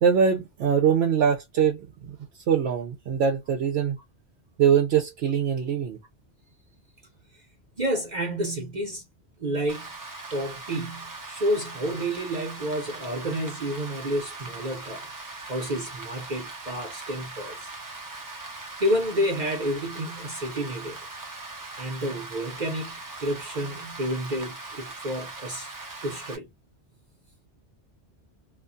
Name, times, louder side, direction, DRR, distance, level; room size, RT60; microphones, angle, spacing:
voice 1, 0.0-2.2 2.5-4.0 4.6-6.0, right 7 dB, 70° right, 0.8 m, -23 dB
voice 2, 7.8-9.0 9.4-9.9 10.3-15.0 15.4-17.6 18.8-21.0 21.8-25.7 26.0-26.5, equal, 45° right, 0.8 m, -30 dB
Rain, 9.7-26.4, right 3 dB, 25° right, 0.4 m, -40 dB
2.4 x 2.2 x 2.5 m
omnidirectional pair, 1.2 m